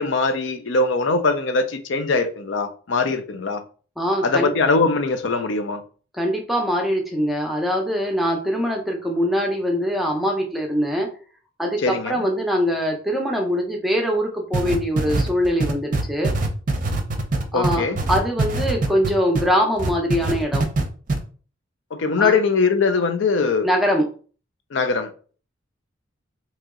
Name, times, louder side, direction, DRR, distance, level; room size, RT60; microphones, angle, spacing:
voice 1, 0.0-3.6 4.2-5.8 11.8-12.2 17.5-18.0 21.9-23.7 24.7-25.1, left 4 dB, 70° left, 0.5 m, -21 dB
voice 2, 4.0-4.5 6.1-11.1 11.6-16.3 17.5-20.7 22.2-22.4 23.6-24.0, equal, ahead, 0.6 m, -23 dB
sound 1, 14.5-19.5 19.8-20.8 21.1-21.2, right 2 dB, 40° right, 0.6 m, -22 dB
3.0 x 2.8 x 3.6 m
head